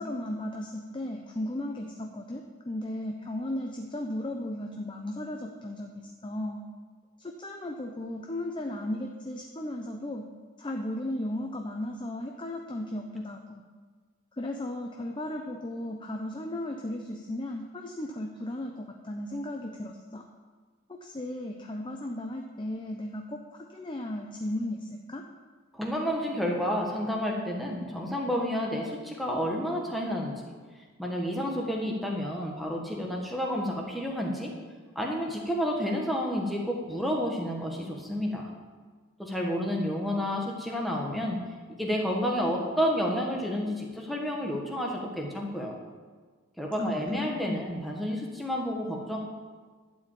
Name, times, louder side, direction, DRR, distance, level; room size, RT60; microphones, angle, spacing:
voice 1, 0.0-6.6 7.2-10.2 10.6-13.6 14.4-20.2 20.9-25.2 46.8-47.7, left 1 dB, 20° left, 2 dB, 0.6 m, -35 dB
voice 2, 25.7-30.3 31.0-34.5 34.9-38.5 39.2-41.4 41.8-45.7 46.6-49.2, equal, ahead, -1 dB, 1.4 m, -30 dB
12.0 x 5.0 x 8.5 m, 1.5 s
head